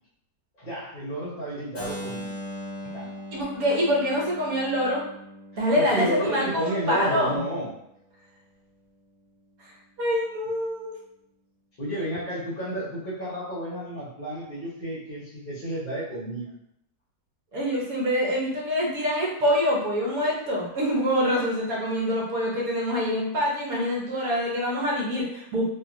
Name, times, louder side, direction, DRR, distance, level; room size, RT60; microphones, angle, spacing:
voice 1, 0.6-2.2 2.9-3.1 5.7-7.7 11.8-16.5, right 1 dB, 40° left, -8 dB, 0.8 m, -31 dB
Keyboard (musical), 1.7-7.6, left 1 dB, 20° left, 1.1 m, -40 dB
voice 2, 3.3-5.0 5.6-7.4 10.0-11.0 17.5-25.7, equal, 65° right, -3 dB, 1.2 m, -25 dB
2.8 x 2.7 x 2.5 m, 0.78 s
omnidirectional pair, 1.7 m